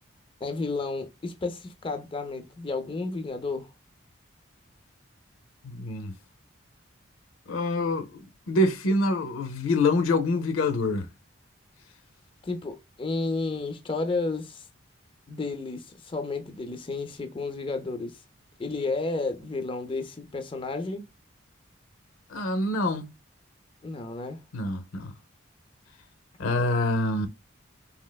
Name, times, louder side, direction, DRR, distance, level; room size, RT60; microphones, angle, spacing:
voice 1, 0.4-3.7 12.4-14.6 15.3-18.2 18.6-21.0 23.8-24.4, left 3 dB, 25° left, 0.4 m, -32 dB
voice 2, 5.6-6.1 7.5-11.1 22.3-23.1 24.5-25.1 26.4-27.3, left 2 dB, 85° left, 0.5 m, -26 dB
3.2 x 2.7 x 2.2 m
head